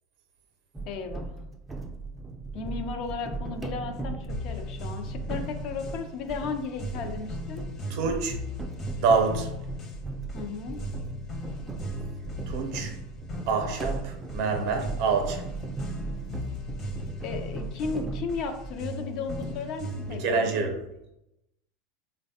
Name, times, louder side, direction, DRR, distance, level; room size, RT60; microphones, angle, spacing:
sound 1, 0.7-18.9 19.3-20.2, right 3 dB, 15° right, 0.4 m, -38 dB
voice 1, 0.9-1.3 2.5-7.6 10.3-10.8 17.2-20.5, left 5 dB, 55° left, 6 dB, 0.4 m, -35 dB
sound 2, 4.3-20.3, left 1 dB, 35° left, 0.7 m, -38 dB
voice 2, 7.9-8.4 9.0-9.5 12.5-12.9 13.5-15.5 20.1-20.8, right 4 dB, 65° right, 4 dB, 0.6 m, -26 dB
3.2 x 2.1 x 2.7 m, 0.87 s
hypercardioid pair, 90°, 0 cm